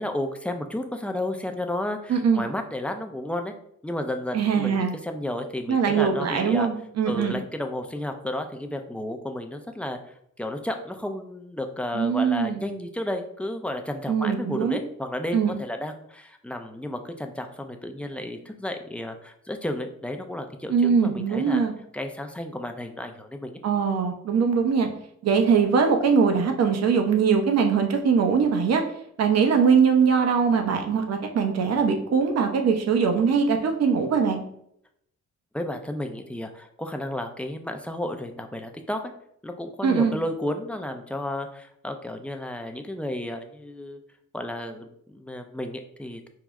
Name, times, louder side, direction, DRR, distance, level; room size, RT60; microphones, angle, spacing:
voice 1, 0.0-3.5 3.8-6.7 7.0-10.0 10.4-21.6 21.9-23.6 35.5-39.1 39.4-44.0 44.3-46.3, left 1 dB, 5° left, 5 dB, 0.4 m, -32 dB
voice 2, 2.1-2.4 4.3-4.9 5.7-7.4 11.9-12.6 14.1-14.8 15.3-15.5 20.7-21.7 23.6-24.9 25.2-28.8 29.2-34.4 39.8-40.2, right 6 dB, 55° right, 5 dB, 0.8 m, -22 dB
4.7 x 2.0 x 3.5 m, 0.73 s
cardioid pair, 90°, 30 cm